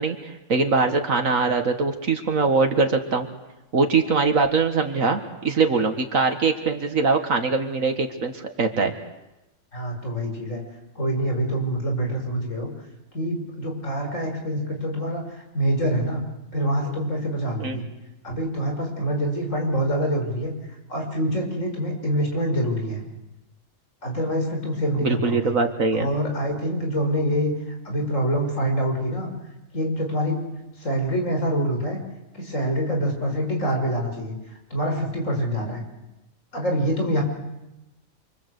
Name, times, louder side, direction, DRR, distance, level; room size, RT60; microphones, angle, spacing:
voice 1, 0.0-3.3 3.7-8.9 17.6-17.8 25.0-26.1, right 4 dB, 80° right, 5 dB, 2.1 m, -22 dB
voice 2, 9.7-10.6 11.0-12.7 13.1-16.2 16.5-17.9 18.2-20.5 20.9-23.0 24.0-25.5 25.9-27.5 27.8-29.3 29.7-30.4 30.8-32.0 32.3-34.3 34.7-35.8 36.5-37.2, equal, 70° left, 2 dB, 6.2 m, -25 dB
29.0 x 24.0 x 8.3 m, 0.97 s
omnidirectional pair, 1.4 m